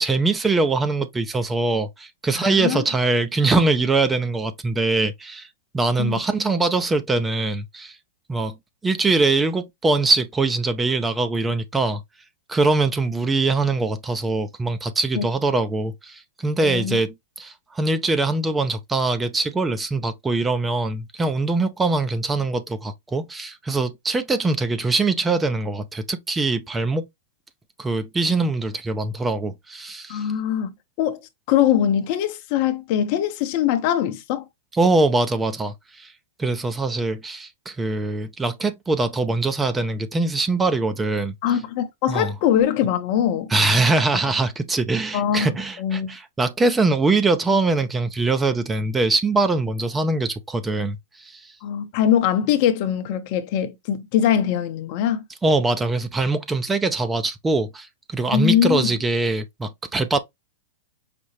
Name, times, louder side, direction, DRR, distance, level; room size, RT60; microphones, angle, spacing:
voice 1, 0.0-5.5 5.7-8.0 8.3-8.6 8.8-12.0 12.5-27.0 27.8-30.3 34.8-36.1 36.4-41.3 42.1-42.3 43.5-51.4 55.4-60.2, right 3 dB, 15° right, 0.5 m, -22 dB
voice 2, 2.3-2.8 6.0-6.2 15.1-15.2 16.6-17.0 30.1-30.7 31.0-31.2 31.5-34.5 41.4-43.5 45.1-46.2 51.6-55.2 58.3-58.9, left 10 dB, 50° left, 0.7 m, -22 dB
5.0 x 2.0 x 3.1 m
hypercardioid pair, 105°, 0 cm